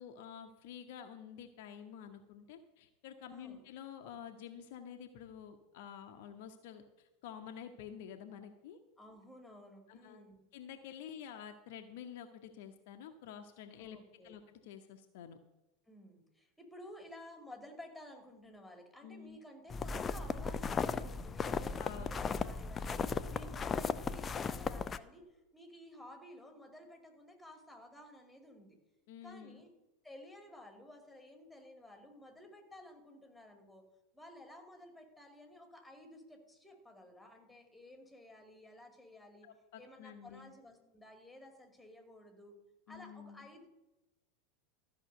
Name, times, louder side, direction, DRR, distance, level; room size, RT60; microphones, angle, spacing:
voice 1, 0.0-8.8 9.9-10.2 10.5-14.0 14.2-15.4 19.0-19.4 21.8-22.1 29.1-29.6 39.4-40.5 42.9-43.5, left 8 dB, 55° left, 6 dB, 0.9 m, -49 dB
voice 2, 3.3-3.6 9.0-10.4 13.8-14.4 15.9-28.8 29.2-29.7 30.0-33.9 34.1-39.5 39.8-42.6 42.9-43.7, left 1 dB, 5° left, 4 dB, 2.5 m, -54 dB
sound 1, 19.7-25.0, left 5 dB, 20° left, 0.5 m, -36 dB
13.5 x 6.1 x 7.8 m, 0.98 s
figure-of-eight pair, 85°, 0 cm